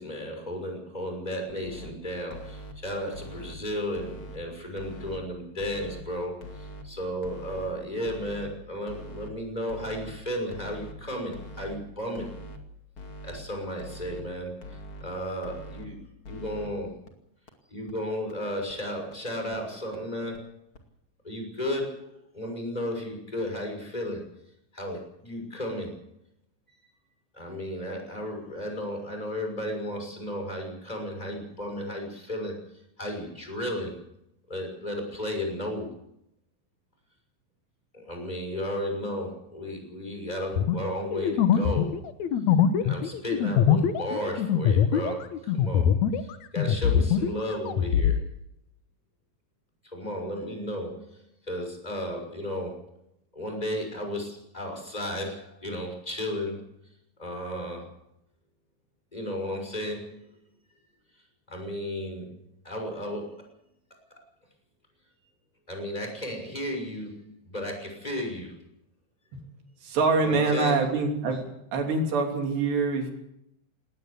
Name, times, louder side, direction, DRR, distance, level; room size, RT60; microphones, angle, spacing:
voice 1, 0.0-12.3 13.2-16.0 16.3-17.0 17.7-20.5 21.2-24.2 24.7-25.9 27.3-34.0 34.5-35.9 37.9-42.1 42.8-48.2 49.8-52.9 53.3-56.7 57.2-57.9 59.1-60.3 61.5-62.3 62.6-63.4 65.7-68.6 70.2-70.8, left 1 dB, 10° left, 3 dB, 6.0 m, -34 dB
sound 1, 1.5-1.9 2.3-2.7 3.1-3.5 3.9-4.4 4.8-5.2 5.6-6.0 6.4-6.8 7.2-7.7 8.1-8.5 8.9-9.3 9.7-10.1 10.5-10.9 11.3-11.8 12.2-12.6 13.0-13.4 13.8-14.2 14.6-15.0 15.4-15.9 16.2-16.7 17.1-17.2 17.5-17.6 17.9-18.0 18.3-18.4 18.7-18.8 19.1-19.2 19.5-19.6 19.9-20.0 20.3-20.4 20.7-20.8, equal, 35° left, 2.5 m, -42 dB
sound 2, 40.5-46.3 46.6-48.2, left 8 dB, 90° left, 1.6 m, -23 dB
voice 2, 69.8-71.5 71.7-73.1, right 3 dB, 75° right, 3 dB, 5.2 m, -25 dB
19.5 x 18.5 x 8.3 m, 0.80 s
omnidirectional pair, 5.0 m